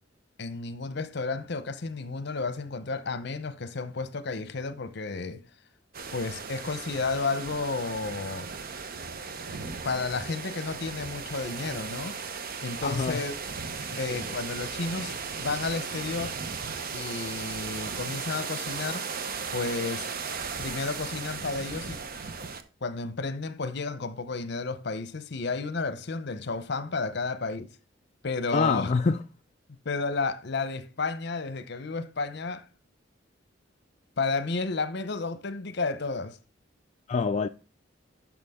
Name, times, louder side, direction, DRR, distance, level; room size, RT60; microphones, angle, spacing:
voice 1, 0.4-5.4 6.1-8.5 9.8-12.2 12.6-13.4 14.0-16.4 16.9-19.1 19.5-20.1 20.6-22.0 22.8-27.7 28.2-28.9 29.8-32.6 34.2-36.4, left 4 dB, 60° left, 0.8 m, -32 dB
sound 1, 5.9-22.6, right 5 dB, 50° right, 0.9 m, -36 dB
voice 2, 12.8-13.2 28.5-29.2 37.1-37.5, left 4 dB, 35° left, 0.4 m, -25 dB
11.0 x 6.0 x 3.6 m
head